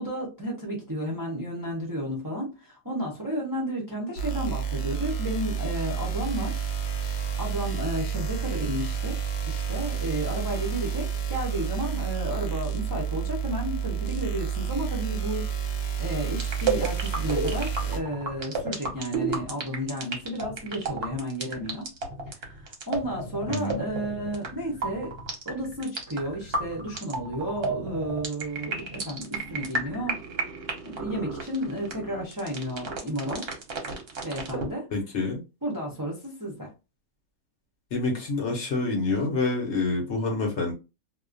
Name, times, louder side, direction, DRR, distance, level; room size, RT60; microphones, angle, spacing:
voice 1, 0.0-6.5 7.1-9.2 9.5-21.9 22.3-25.1 25.4-30.5 30.8-33.5 34.2-34.8 35.6-36.7, equal, 30° right, -3 dB, 0.4 m, -32 dB
sound 1, 4.2-18.0, right 7 dB, 80° left, 1.1 m, -30 dB
sound 2, 16.3-34.7, right 4 dB, 55° right, 0.8 m, -32 dB
voice 2, 23.5-23.8 34.9-35.4 37.9-40.7, left 3 dB, 60° left, 1 dB, 0.9 m, -27 dB
2.3 x 2.1 x 2.4 m, 0.29 s
omnidirectional pair, 1.5 m